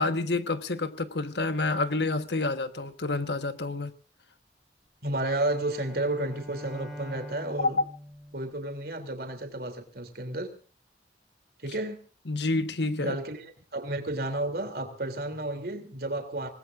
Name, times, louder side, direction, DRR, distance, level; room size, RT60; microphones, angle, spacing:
voice 1, 0.0-3.9 7.6-7.7 12.3-13.2, left 3 dB, 75° left, 1.3 m, -28 dB
voice 2, 5.0-7.8 8.3-10.5 11.6-12.0 13.0-16.5, right 2 dB, 60° right, 3.1 m, -32 dB
Bowed string instrument, 5.2-9.4, equal, ahead, 3.9 m, -44 dB
26.5 x 19.5 x 2.6 m
head